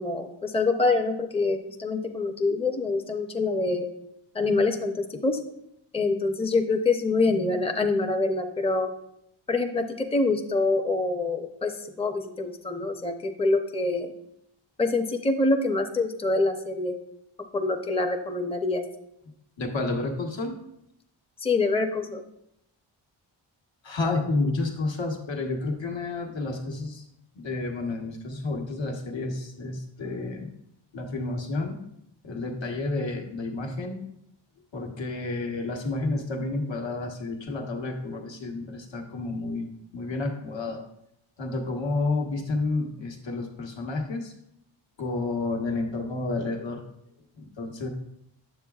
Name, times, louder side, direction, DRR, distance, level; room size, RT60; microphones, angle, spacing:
voice 1, 0.0-3.9 4.3-5.4 5.9-8.9 9.5-14.1 14.8-16.9 17.5-18.8 21.4-22.2, left 3 dB, 10° left, 5 dB, 0.6 m, -25 dB
voice 2, 19.6-20.6 23.8-27.0 27.3-30.5 30.9-31.8 32.2-34.0 34.7-40.8 41.4-44.3 45.0-46.8 47.4-47.9, left 3 dB, 60° left, 2 dB, 1.2 m, -30 dB
8.5 x 6.9 x 2.4 m, 0.78 s
cardioid pair, 60°, 50 cm